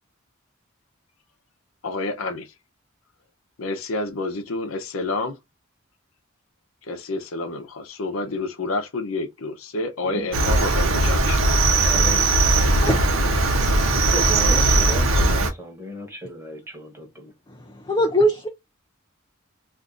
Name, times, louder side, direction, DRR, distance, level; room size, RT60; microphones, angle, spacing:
voice 1, 1.8-2.5 3.6-5.4 6.9-11.4, left 2 dB, 85° left, 0.7 m, -29 dB
Cricket, 10.3-15.5, right 2 dB, 80° right, 0.8 m, -19 dB
voice 2, 11.8-12.4 14.0-17.3, equal, 10° right, 1.1 m, -34 dB
voice 3, 17.5-18.5, equal, 20° left, 0.4 m, -21 dB
2.6 x 2.5 x 3.6 m
head